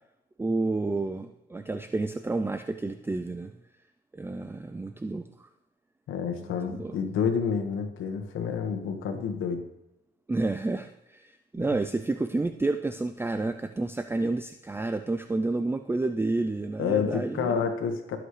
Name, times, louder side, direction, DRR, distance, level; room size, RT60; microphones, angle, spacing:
voice 1, 0.4-3.5 4.1-5.2 6.4-7.0 10.3-17.6, right 2 dB, 10° right, 9 dB, 0.5 m, -30 dB
voice 2, 6.1-9.6 16.8-18.2, left 6 dB, 80° left, 6 dB, 1.7 m, -29 dB
19.5 x 7.8 x 3.3 m, 0.90 s
cardioid pair, 90°, 20 cm